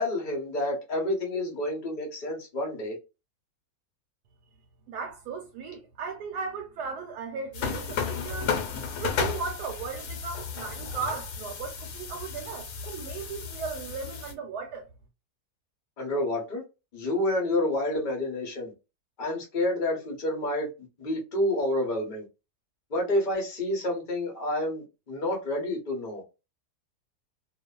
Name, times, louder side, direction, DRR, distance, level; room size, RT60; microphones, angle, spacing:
voice 1, 0.0-3.0 16.0-16.6 16.9-18.7 19.2-20.7 21.0-22.2 22.9-26.2, left 1 dB, 40° left, 0.8 m, -29 dB
voice 2, 4.9-8.5 9.0-14.9, right 5 dB, 80° right, 1.1 m, -36 dB
sound 1, 7.5-14.3, left 6 dB, 75° left, 1.2 m, -33 dB
2.6 x 2.3 x 2.2 m
omnidirectional pair, 1.7 m